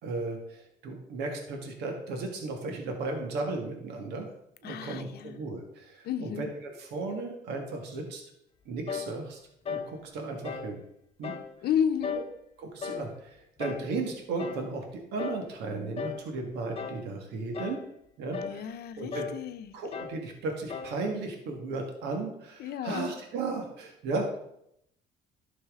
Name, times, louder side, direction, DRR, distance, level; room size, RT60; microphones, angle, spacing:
voice 1, 0.0-4.3 4.6-8.2 8.6-9.4 9.7-10.8 11.2-11.3 12.1-12.2 12.6-17.8 18.2-19.3 19.7-24.4, right 3 dB, 80° right, 3 dB, 1.7 m, -35 dB
voice 2, 4.6-5.4 6.0-6.5 11.6-12.3 18.4-19.7 22.6-23.1, left 8 dB, 70° left, 9 dB, 0.8 m, -32 dB
sound 1, 8.9-9.2 9.6-9.9 10.4-10.7 11.2-11.5 12.0-12.3 12.8-13.1 13.6-13.9 14.4-14.7 15.2-15.5 16.0-16.3 16.8-17.1 17.5-17.9 18.3-18.6 19.1-19.4 19.9-20.2 20.7-21.0, left 6 dB, 35° left, 0.8 m, -36 dB
11.5 x 6.1 x 3.7 m, 0.76 s
cardioid pair, 110°, 17 cm